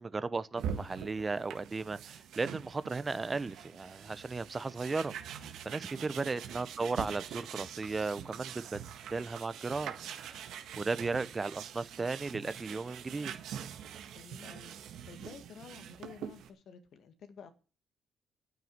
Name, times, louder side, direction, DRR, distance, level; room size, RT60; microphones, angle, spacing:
voice 1, 0.0-8.8 9.1-10.5 10.8-13.3, right 3 dB, 25° right, 0.8 m, -36 dB
sound 1, 0.6-16.5, right 8 dB, 80° right, 1.6 m, -44 dB
voice 2, 5.9-6.2 14.1-14.7 15.0-17.5, left 7 dB, 70° left, 2.0 m, -52 dB
9.4 x 9.1 x 7.9 m
cardioid pair, 90°, 0 cm